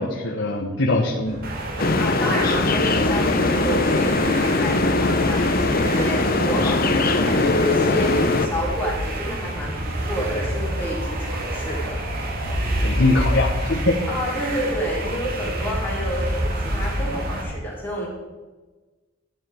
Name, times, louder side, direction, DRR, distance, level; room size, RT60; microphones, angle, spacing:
voice 1, 0.0-1.4 12.8-13.9, left 2 dB, 65° left, -1 dB, 1.4 m, -22 dB
sound 1, 1.2-17.5, equal, 80° right, 2.8 m, -29 dB
sound 2, 1.4-17.4, right 3 dB, 50° right, 2.1 m, -34 dB
sound 3, 1.8-8.5, left 3 dB, 50° left, 0.8 m, -20 dB
voice 2, 2.0-12.0 14.1-18.1, equal, 10° left, -6 dB, 4.4 m, -29 dB
12.5 x 9.1 x 4.7 m, 1.2 s
head